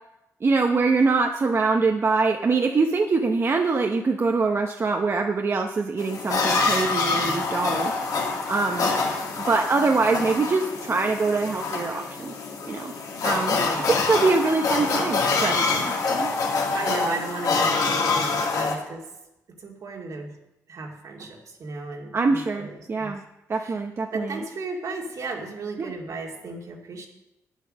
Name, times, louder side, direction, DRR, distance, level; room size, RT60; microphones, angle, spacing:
voice 1, 0.4-7.9 8.5-8.9 9.5-12.3 12.7-12.9 13.2-13.6 13.9-16.3 22.1-23.2 23.5-24.4 25.8-25.9, right 4 dB, 45° right, 3 dB, 0.9 m, -24 dB
sound 1, 6.0-18.8, left 4 dB, 75° left, 2.1 m, -26 dB
voice 2, 13.5-13.9 16.7-19.1 19.5-20.3 20.7-23.1 23.6-23.8 24.1-27.1, right 3 dB, 65° right, 1 dB, 2.2 m, -35 dB
9.3 x 8.1 x 6.4 m, 0.93 s
cardioid pair, 70°, 6 cm